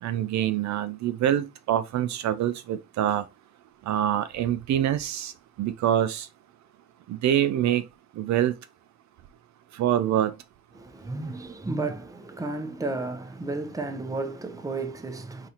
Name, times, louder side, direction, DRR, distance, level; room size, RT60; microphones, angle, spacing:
voice 1, 0.0-3.2 3.9-5.3 5.6-6.3 7.1-7.8 8.2-8.5 9.7-10.3, right 11 dB, 65° right, 0.5 m, -25 dB
voice 2, 10.7-15.5, right 3 dB, 10° right, 0.7 m, -33 dB
4.1 x 3.8 x 2.8 m
cardioid pair, 90°, 30 cm